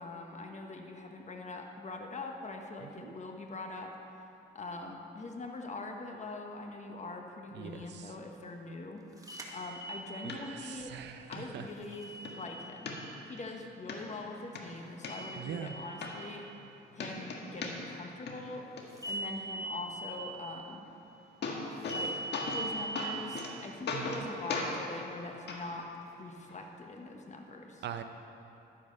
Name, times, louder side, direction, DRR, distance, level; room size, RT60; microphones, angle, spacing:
voice 1, 0.0-9.0 9.5-10.9 11.3-12.9 13.3-16.5 16.9-18.7 19.0-20.9 21.9-25.9 26.2-27.8, left 3 dB, 35° left, 3 dB, 1.2 m, -43 dB
voice 2, 2.8-3.1 7.5-8.1 10.2-11.7 15.4-15.7 23.9-24.3 27.8-28.0, right 9 dB, 60° right, 7 dB, 0.7 m, -42 dB
sound 1, 9.2-10.4 11.9-13.0 15.0-16.1 19.0-20.1 21.9-23.0, right 1 dB, 15° right, 1.5 m, -40 dB
sound 2, 10.3-10.4 10.9-11.0 11.3-11.4 11.9-12.3 12.9-13.4 13.9-14.0 14.4-15.1 15.7-15.8 16.0-16.7 17.0-18.0 18.3-18.8 20.9-21.0 21.2-22.0 22.3-22.7 23.0-23.5 23.9-24.2 24.5-24.7 25.5-25.6 26.5-26.6, left 4 dB, 60° left, 1.6 m, -37 dB
11.0 x 8.5 x 5.4 m, 2.9 s
cardioid pair, 90°, 20 cm